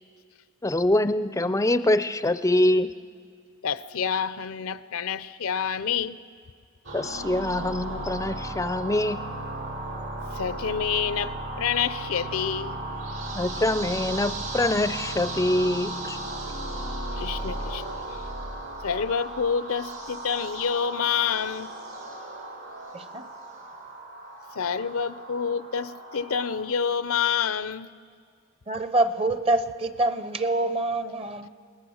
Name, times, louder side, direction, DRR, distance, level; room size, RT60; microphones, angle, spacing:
voice 1, 0.6-2.9 6.9-9.2 13.3-16.2, left 1 dB, 15° left, 0.5 m, -24 dB
voice 2, 3.6-6.2 10.3-12.8 17.1-18.2 18.8-21.7 24.5-27.9, left 7 dB, 65° left, 0.6 m, -28 dB
sound 1, 6.8-26.6, right 2 dB, 80° right, 5.6 m, -35 dB
voice 3, 22.9-23.3 28.7-31.5, right 2 dB, 25° right, 0.8 m, -26 dB
28.5 x 20.5 x 6.4 m
head